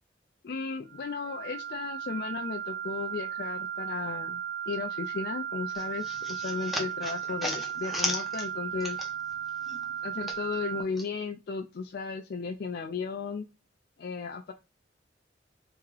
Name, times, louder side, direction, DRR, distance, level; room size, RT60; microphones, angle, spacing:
voice 1, 0.4-4.4 4.7-9.1 10.0-13.5 14.0-14.5, left 5 dB, 60° left, 3 dB, 0.4 m, -35 dB
sound 1, 0.9-10.8, right 9 dB, 75° right, 0.5 m, -36 dB
sound 2, 5.7-9.4 9.7-11.1, left 1 dB, ahead, 0.6 m, -36 dB
3.5 x 2.8 x 3.1 m, 0.27 s
head